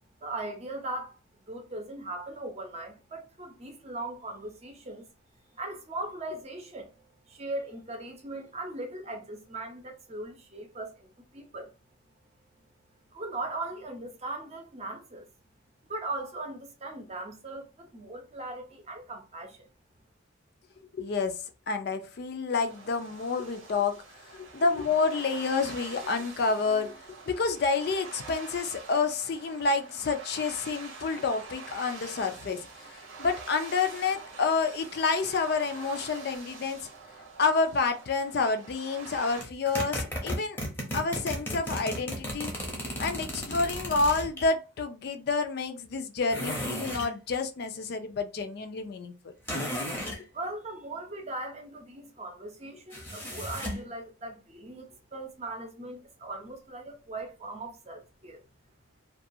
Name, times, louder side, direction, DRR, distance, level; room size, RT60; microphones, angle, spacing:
voice 1, 0.2-5.1 5.5-11.7 13.1-15.2 15.9-19.7 50.3-58.4, right 2 dB, 30° right, 0.6 m, -39 dB
voice 2, 21.0-21.4 21.7-24.0 24.4-27.0 27.3-32.6 32.9-36.8 37.4-40.6 40.9-42.5 43.0-49.3, left 4 dB, 50° left, 0.4 m, -29 dB
sound 1, 22.6-39.4, right 4 dB, 85° right, 0.8 m, -46 dB
sound 2, 39.4-44.5 46.3-47.1 49.5-50.2 52.9-53.9, equal, 10° left, 0.6 m, -34 dB
2.4 x 2.2 x 2.6 m
head